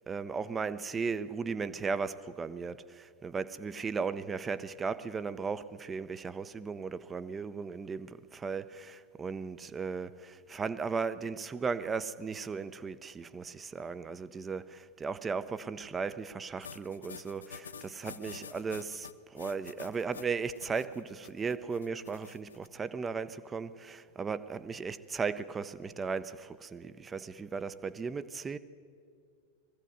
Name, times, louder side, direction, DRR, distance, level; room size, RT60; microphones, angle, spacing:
voice 1, 0.0-28.6, right 5 dB, 15° right, 0.7 m, -36 dB
sound 1, 16.6-22.7, left 6 dB, 70° left, 0.6 m, -48 dB
20.5 x 15.5 x 8.1 m
figure-of-eight pair, 90°, 0 cm